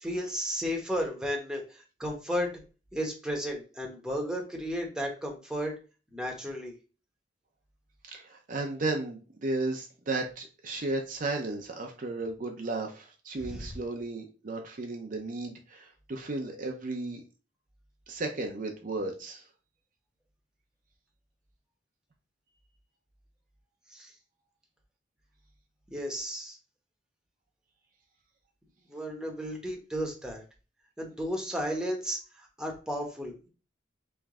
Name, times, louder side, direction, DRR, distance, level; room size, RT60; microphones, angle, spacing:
voice 1, 0.0-2.5 2.9-5.7 6.1-6.7 13.4-13.6 23.9-24.1 25.9-26.6 28.9-30.4 31.0-33.5, equal, 5° right, 0 dB, 0.9 m, -33 dB
voice 2, 8.0-17.2 18.1-19.5, right 2 dB, 45° right, 2 dB, 0.6 m, -34 dB
3.3 x 3.1 x 3.6 m, 0.33 s
head